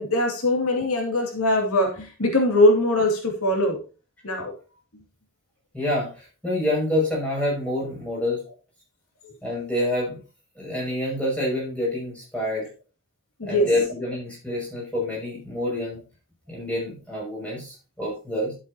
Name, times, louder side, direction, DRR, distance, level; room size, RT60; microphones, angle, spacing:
voice 1, 0.0-3.8 4.2-4.5 9.2-9.3 13.4-13.7, left 1 dB, 85° left, 2 dB, 2.4 m, -21 dB
voice 2, 5.7-8.4 9.4-10.2 10.5-12.7 13.4-16.0 16.5-18.5, left 1 dB, 5° left, -5 dB, 6.1 m, -27 dB
12.0 x 7.8 x 2.8 m, 0.33 s
head